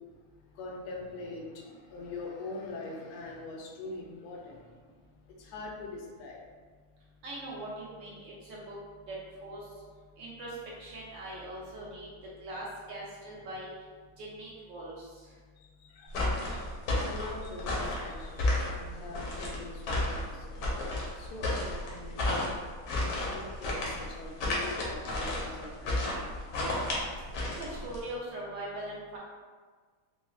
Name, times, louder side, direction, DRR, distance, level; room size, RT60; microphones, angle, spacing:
voice 1, 0.5-6.4 15.6-16.7 17.0-20.8 21.1-22.6 23.0-26.2, left 3 dB, 90° left, -1 dB, 1.5 m, -44 dB
voice 2, 7.2-8.8 9.1-9.6 10.2-12.1 12.4-13.7 14.2-15.1 27.6-29.2, right 1 dB, 75° right, -5 dB, 1.1 m, -41 dB
sound 1, 16.1-28.1, left 1 dB, 70° left, 1.1 m, -32 dB
4.6 x 2.0 x 2.3 m, 1.5 s
omnidirectional pair, 2.4 m